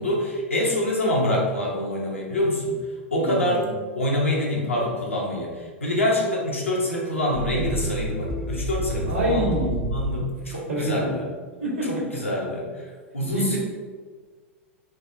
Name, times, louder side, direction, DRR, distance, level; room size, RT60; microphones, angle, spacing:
voice 1, 0.0-2.7 3.1-3.6 3.9-5.5 5.8-9.5 9.9-11.2 11.9-12.7 13.1-13.6, left 1 dB, 80° left, -3 dB, 0.7 m, -25 dB
voice 2, 3.2-3.8 9.1-10.0 10.5-11.2 11.6-12.0 13.3-13.6, right 1 dB, 65° right, -3 dB, 0.9 m, -27 dB
sound 1, 7.3-10.3, right 1 dB, 10° right, 0.3 m, -30 dB
3.4 x 2.1 x 2.6 m, 1.5 s
figure-of-eight pair, 90°, 7 cm